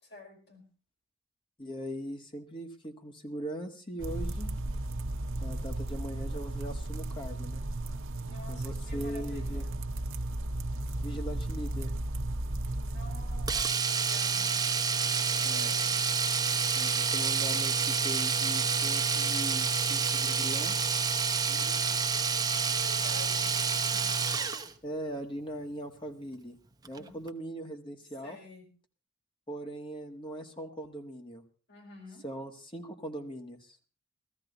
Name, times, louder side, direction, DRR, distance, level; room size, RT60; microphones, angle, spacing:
voice 1, 0.0-0.7 8.2-9.7 12.8-14.6 15.2-16.0 21.4-24.1 26.9-27.1 28.2-28.7 31.7-32.3, left 1 dB, 55° left, 0 dB, 5.0 m, -50 dB
voice 2, 1.6-4.5 5.4-7.6 8.5-9.6 11.0-11.9 15.4-15.7 16.7-20.8 24.8-26.6 26.9-28.4 29.5-31.4 32.2-33.8, equal, 25° left, 4 dB, 1.6 m, -40 dB
sound 1, 4.0-13.6, right 1 dB, 65° right, 0.9 m, -34 dB
Domestic sounds home sounds, 13.5-24.7 26.8-27.0 27.3-27.4, right 5 dB, 20° right, 0.8 m, -28 dB
17.0 x 14.0 x 4.0 m, 0.36 s
head